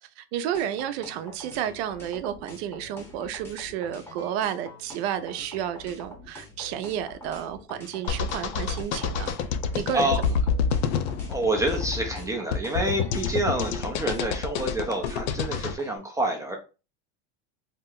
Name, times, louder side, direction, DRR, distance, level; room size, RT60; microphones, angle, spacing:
voice 1, 0.2-9.3 9.7-10.1, right 10 dB, 65° right, 0.5 m, -31 dB
sound 1, 0.5-16.0, left 1 dB, 5° left, 0.7 m, -45 dB
sound 2, 8.1-15.8, left 6 dB, 70° left, 0.5 m, -28 dB
voice 2, 11.3-16.6, right 2 dB, 10° right, 0.4 m, -27 dB
2.8 x 2.1 x 3.6 m
supercardioid pair, 135°, 34 cm